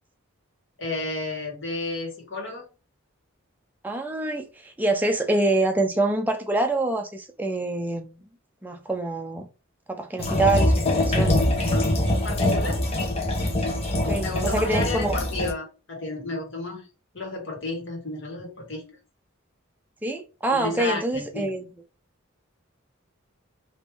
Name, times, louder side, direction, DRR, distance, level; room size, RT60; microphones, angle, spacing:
voice 1, 0.8-2.7 12.2-12.9 14.2-16.9 17.1-19.0 20.5-21.5, left 2 dB, 60° left, 1.5 m, -32 dB
voice 2, 3.8-8.1 8.6-9.5 9.9-11.4 13.9-15.2 20.0-21.7, right 2 dB, 10° right, 0.5 m, -26 dB
sound 1, 10.2-15.5, left 1 dB, 30° left, 0.8 m, -23 dB
3.2 x 2.6 x 3.4 m
head